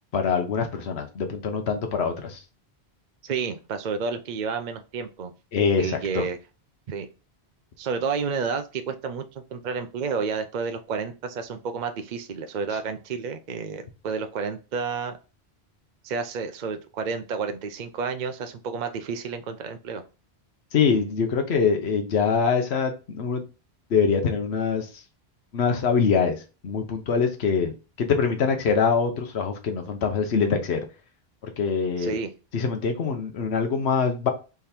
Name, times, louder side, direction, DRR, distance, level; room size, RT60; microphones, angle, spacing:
voice 1, 0.1-2.4 5.5-6.2 20.7-23.4 23.9-25.0 25.5-30.8 31.4-32.1 32.5-34.3, left 5 dB, 80° left, 4 dB, 1.1 m, -24 dB
voice 2, 3.2-5.3 5.8-6.4 6.9-7.1 7.8-15.2 16.0-20.0 32.0-32.3, right 5 dB, 55° right, 7 dB, 0.6 m, -30 dB
3.6 x 3.4 x 4.3 m, 0.31 s
omnidirectional pair, 1.1 m